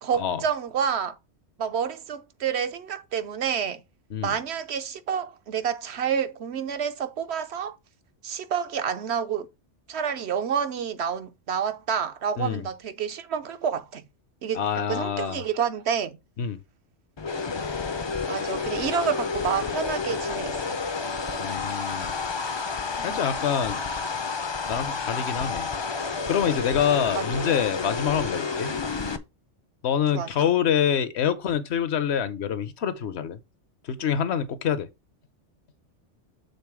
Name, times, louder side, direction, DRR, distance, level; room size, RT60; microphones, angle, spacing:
voice 1, 0.0-1.1 1.6-3.8 4.2-7.8 8.2-9.5 9.9-14.0 14.4-14.6 14.9-16.2 18.3-20.8 23.0-23.2 27.1-27.5 30.1-30.3, right 7 dB, 65° right, 0.9 m, -29 dB
voice 2, 14.5-15.4 16.4-16.6 21.4-22.1 23.0-23.8 24.7-25.7 26.3-28.7 29.8-33.4 33.8-34.9, left 8 dB, 65° left, 1.0 m, -26 dB
sound 1, 17.2-29.2, left 4 dB, 35° left, 0.4 m, -30 dB
6.7 x 3.8 x 4.7 m
omnidirectional pair, 1.2 m